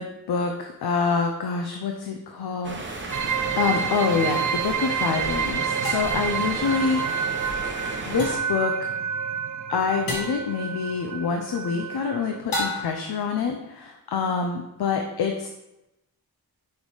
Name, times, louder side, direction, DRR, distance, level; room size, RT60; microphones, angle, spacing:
voice 1, 0.0-7.0 8.1-8.9 9.7-15.5, left 5 dB, 80° left, 4 dB, 0.6 m, -26 dB
sound 1, 2.6-8.4, right 2 dB, 30° right, 0.8 m, -34 dB
sound 2, 3.1-12.4, right 7 dB, 50° right, 0.4 m, -29 dB
sound 3, 3.8-3.9 5.8-6.3 8.2-8.6 10.1-10.5 12.5-13.1, left 1 dB, 65° left, 1.6 m, -31 dB
6.5 x 3.5 x 4.7 m, 0.92 s
wide cardioid pair, 135°, 38 cm